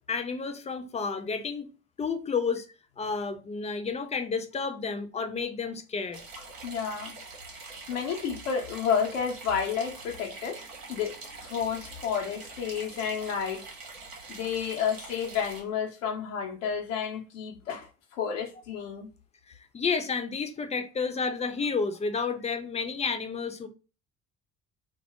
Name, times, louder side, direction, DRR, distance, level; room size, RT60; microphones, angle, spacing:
voice 1, 0.1-1.7 2.0-2.7 3.0-6.2 19.7-23.7, left 5 dB, 15° left, 0.4 m, -31 dB
sound 1, 6.1-15.6, right 3 dB, 85° right, 0.7 m, -44 dB
voice 2, 6.6-7.1 7.9-10.6 10.9-11.2 11.4-13.6 14.3-19.1, left 7 dB, 80° left, 0.6 m, -31 dB
2.2 x 2.0 x 2.9 m
hypercardioid pair, 55°, 39 cm